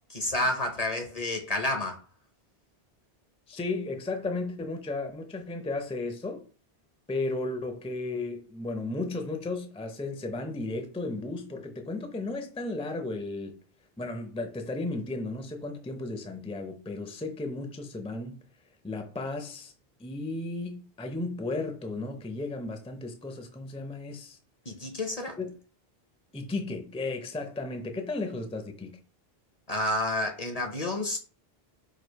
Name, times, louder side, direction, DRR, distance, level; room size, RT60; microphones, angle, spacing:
voice 1, 0.1-2.0 24.7-25.4 29.7-31.2, left 1 dB, 40° left, 0.7 m, -30 dB
voice 2, 3.5-6.5 7.1-13.6 14.0-18.4 18.8-19.7 20.0-24.4 25.4-25.5 26.3-28.9, left 2 dB, 10° left, 0.5 m, -34 dB
4.8 x 2.4 x 4.6 m
omnidirectional pair, 1.1 m